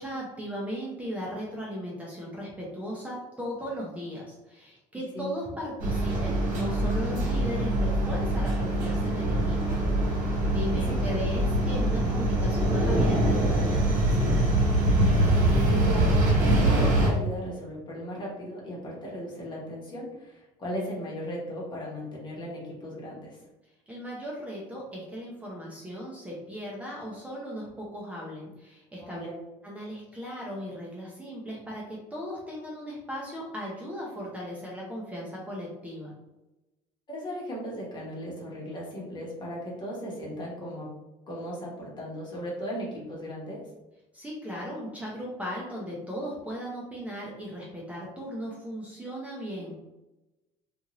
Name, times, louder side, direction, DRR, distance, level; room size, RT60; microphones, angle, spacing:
voice 1, 0.0-9.8 10.1-14.4 23.9-29.3 29.6-36.1 44.1-49.8, equal, 10° right, -4 dB, 0.6 m, -37 dB
sound 1, 5.8-17.1, right 1 dB, 60° right, 1.2 m, -24 dB
voice 2, 15.5-23.4 29.0-29.4 37.1-40.9 41.3-43.6, equal, 35° left, -4 dB, 1.1 m, -36 dB
2.6 x 2.5 x 2.9 m, 1.0 s
cardioid pair, 115°, 14 cm